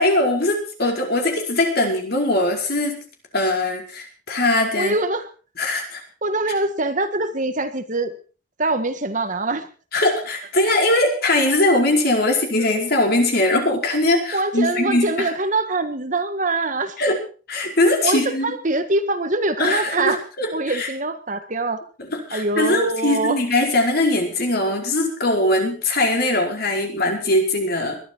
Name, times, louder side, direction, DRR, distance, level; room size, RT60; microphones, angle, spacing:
voice 1, 0.0-3.0 3.3-5.0 5.6-6.0 9.9-15.3 17.0-17.2 17.5-18.6 19.6-20.9 22.0-28.0, left 2 dB, 55° left, 2 dB, 5.0 m, -21 dB
voice 2, 4.8-5.3 6.2-8.1 8.6-9.7 14.3-17.0 18.0-20.2 20.5-21.8 22.3-23.4, right 2 dB, 40° right, 8 dB, 1.7 m, -23 dB
21.5 x 13.0 x 4.7 m, 0.38 s
head